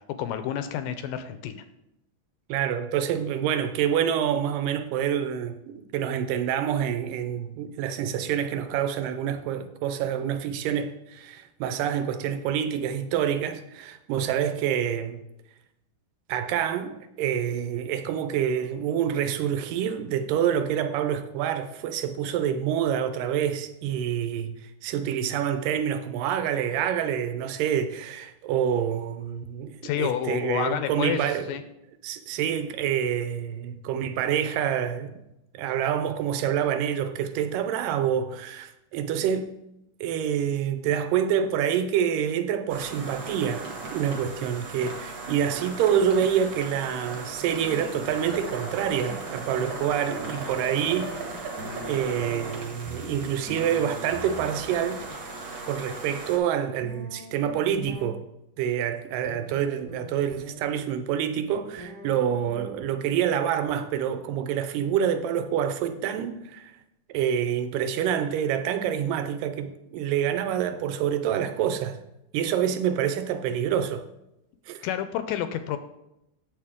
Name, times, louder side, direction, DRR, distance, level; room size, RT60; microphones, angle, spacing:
voice 1, 0.2-1.6 29.8-31.6 74.8-75.8, left 10 dB, 80° left, 2.0 m, -29 dB
voice 2, 2.5-15.2 16.3-31.5 32.0-35.2 35.5-39.5 40.0-51.2 51.8-55.0 55.7-58.3 58.6-66.7 67.1-72.0 72.3-74.0 74.7-74.8, right 9 dB, 80° right, 2.2 m, -27 dB
sound 1, 42.7-56.4, right 3 dB, 55° right, 2.0 m, -37 dB
sound 2, 47.1-48.6 48.9-54.7 56.8-58.1 59.3-60.5 61.8-63.2, equal, 40° right, 1.3 m, -43 dB
8.9 x 7.0 x 3.6 m
omnidirectional pair, 4.0 m